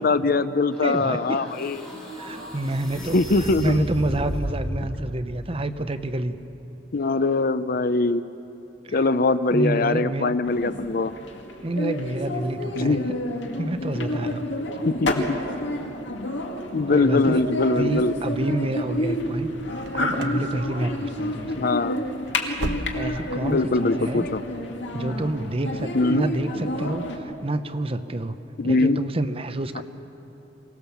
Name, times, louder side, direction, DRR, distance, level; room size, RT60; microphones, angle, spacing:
voice 1, 0.0-1.8 3.1-3.9 6.9-8.2 8.9-11.1 12.8-13.1 14.9-15.4 16.7-18.1 21.6-22.0 23.4-24.4 25.9-26.2 28.6-29.0 29.8-29.9, left 3 dB, 50° left, 14 dB, 0.6 m, -22 dB
sound 1, 0.7-4.7, equal, 5° left, 6.4 m, -34 dB
voice 2, 0.8-1.4 2.1-6.4 8.8-9.0 9.5-10.3 11.6-13.2 13.6-14.5 16.9-19.5 19.9-21.6 22.9-24.3 24.9-28.4 28.6-29.8, right 1 dB, 30° right, 10 dB, 0.8 m, -28 dB
sound 2, 10.4-27.2, left 1 dB, 80° left, 2.1 m, -29 dB
sound 3, 19.7-20.5 20.7-21.2 21.5-21.6 22.1-23.3 23.6-23.7 24.3-24.4, right 1 dB, 65° right, 1.0 m, -34 dB
24.5 x 18.5 x 7.2 m, 3.0 s
head